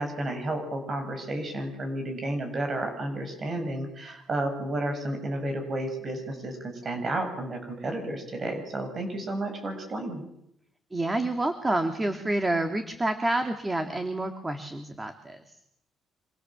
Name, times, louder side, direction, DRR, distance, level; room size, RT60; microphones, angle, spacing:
voice 1, 0.0-10.2, right 1 dB, 45° right, 6 dB, 6.9 m, -32 dB
voice 2, 10.9-15.6, right 2 dB, 20° right, 6 dB, 2.7 m, -28 dB
27.0 x 27.0 x 7.5 m, 0.79 s
cardioid pair, 90°, 0 cm